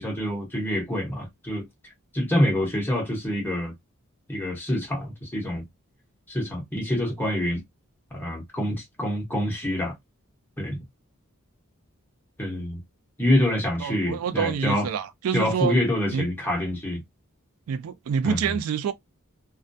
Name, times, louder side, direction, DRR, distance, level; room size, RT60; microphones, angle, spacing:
voice 1, 0.0-1.7 2.1-3.7 4.3-5.6 6.3-7.6 8.1-10.0 10.6-10.8 12.4-12.8 13.2-14.9 15.3-17.0 18.2-18.5, left 1 dB, 10° left, 0.9 m, -26 dB
voice 2, 13.8-15.8 16.1-16.3 17.7-18.9, right 7 dB, 80° right, 0.3 m, -27 dB
2.2 x 2.1 x 2.5 m
head